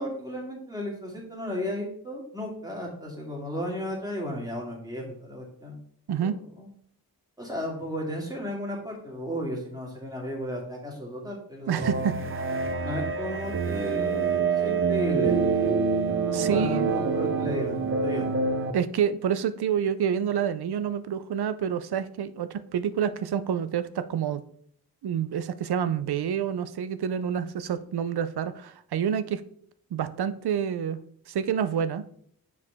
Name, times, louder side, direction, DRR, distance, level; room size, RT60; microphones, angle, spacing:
voice 1, 0.0-5.8 6.2-6.7 7.4-11.9 12.8-15.4 16.2-18.3, left 1 dB, 10° right, -2 dB, 2.3 m, -34 dB
voice 2, 6.1-6.4 11.7-12.5 16.3-16.9 18.7-24.4 25.0-29.4 29.9-31.0 31.3-32.1, right 8 dB, 80° right, 13 dB, 0.6 m, -28 dB
sound 1, 11.8-18.7, right 5 dB, 35° right, 0.6 m, -26 dB
7.0 x 4.8 x 3.5 m, 0.64 s
wide cardioid pair, 85°, 38 cm